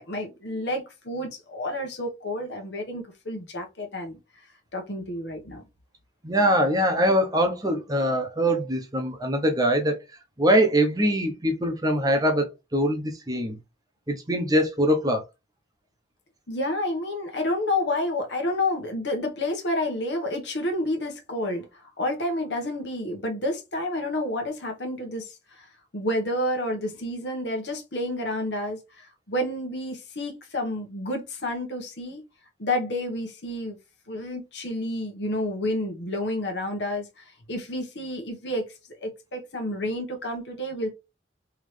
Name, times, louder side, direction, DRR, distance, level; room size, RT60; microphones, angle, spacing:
voice 1, 0.0-4.2 4.7-5.6 16.5-25.2 25.6-25.7 25.9-32.2 32.6-33.8 34.1-38.7 39.0-40.9, left 1 dB, 70° left, 1.3 m, -30 dB
voice 2, 6.2-10.0 10.4-13.6 14.1-15.2, equal, 20° right, 0.8 m, -23 dB
3.6 x 3.1 x 3.2 m
head